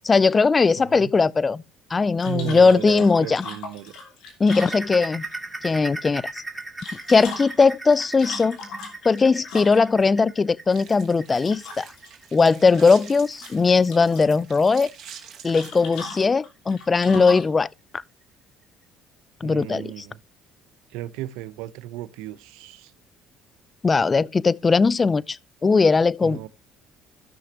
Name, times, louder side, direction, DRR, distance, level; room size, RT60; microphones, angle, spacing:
voice 1, 0.0-1.6 1.9-3.4 4.4-5.2 5.6-6.4 7.1-8.6 9.0-11.9 12.3-14.9 15.4-17.7 19.4-19.9 23.8-25.4 25.6-26.4, left 4 dB, 25° left, 0.4 m, -19 dB
voice 2, 0.8-1.1 2.2-3.9 19.4-20.2 20.9-22.9 26.2-26.5, right 14 dB, 85° right, 0.7 m, -35 dB
sound 1, 2.2-5.3 6.6-10.0 11.4-12.1 12.4-13.1 13.4-14.3 15.5-17.5, left 2 dB, 70° left, 3.1 m, -37 dB
sound 2, 4.5-15.8 16.2-16.4 16.8-16.9 17.4-17.5, right 3 dB, 15° right, 2.1 m, -38 dB
sound 3, 10.7-15.8, right 8 dB, 55° right, 2.8 m, -46 dB
16.0 x 6.1 x 2.9 m
supercardioid pair, 90°, 0 cm